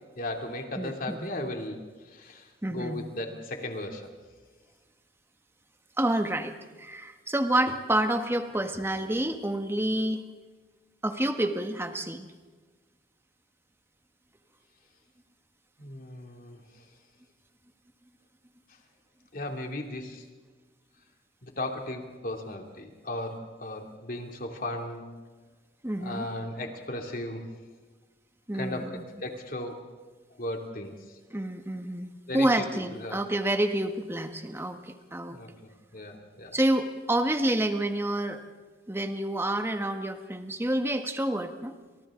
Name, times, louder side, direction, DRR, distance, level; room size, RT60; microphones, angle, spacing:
voice 1, 0.2-1.8 2.1-4.1 15.8-16.6 19.3-20.2 21.4-25.0 26.0-27.5 28.5-29.8 30.4-30.9 32.3-33.2 35.3-35.5 35.9-36.6, left 1 dB, 50° left, 2 dB, 2.9 m, -36 dB
voice 2, 0.8-1.3 2.6-3.0 6.0-10.2 11.0-12.3 25.8-26.3 28.5-29.0 31.3-35.4 36.5-38.4 38.9-41.7, right 1 dB, 15° right, 6 dB, 1.4 m, -28 dB
30.0 x 27.5 x 3.8 m, 1.4 s
head